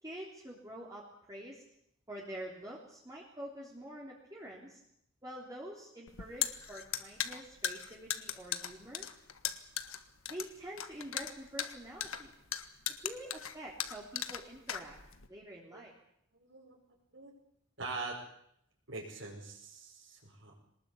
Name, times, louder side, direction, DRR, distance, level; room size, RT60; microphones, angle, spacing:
voice 1, 0.0-1.6 2.1-4.8 5.2-9.1 10.3-12.3 13.0-15.0 15.3-15.9, right 1 dB, 15° right, -3 dB, 3.3 m, -46 dB
sound 1, 6.1-15.3, left 10 dB, 80° left, 1.5 m, -38 dB
voice 2, 16.3-16.8 17.1-17.3 17.8-18.2 18.9-20.6, right 3 dB, 60° right, -5 dB, 5.5 m, -43 dB
23.5 x 20.0 x 8.4 m, 0.73 s
head